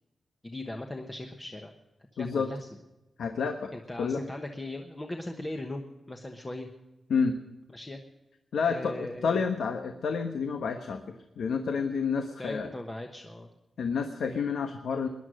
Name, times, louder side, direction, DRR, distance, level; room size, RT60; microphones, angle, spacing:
voice 1, 0.4-1.7 2.1-2.7 3.7-6.7 7.7-8.0 8.6-9.4 12.4-13.5, left 1 dB, 15° left, 4 dB, 1.1 m, -39 dB
voice 2, 2.2-2.5 3.2-3.7 4.0-4.2 7.1-7.4 8.5-11.0 11.4-12.7 13.8-15.1, left 5 dB, 85° left, 7 dB, 1.2 m, -29 dB
20.0 x 11.0 x 6.4 m, 1.0 s
wide cardioid pair, 170°, 0 cm